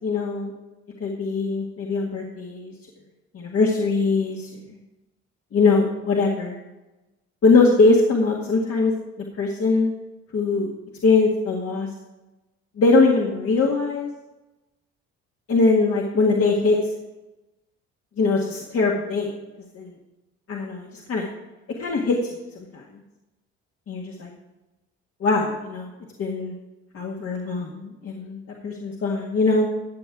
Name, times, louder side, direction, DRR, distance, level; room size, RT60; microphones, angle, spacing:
voice 1, 0.0-0.5 1.0-2.7 3.3-4.5 5.5-6.5 7.4-8.9 9.4-9.9 10.3-10.7 11.0-11.9 12.8-14.1 15.5-16.8 18.2-19.3 19.7-19.9 20.5-21.3 21.8-22.8 23.9-24.3 25.2-25.9 26.2-26.5 26.9-29.7, left 3 dB, 50° left, -1 dB, 1.8 m, -21 dB
12.5 x 7.4 x 4.8 m, 1.0 s
supercardioid pair, 70°, 30 cm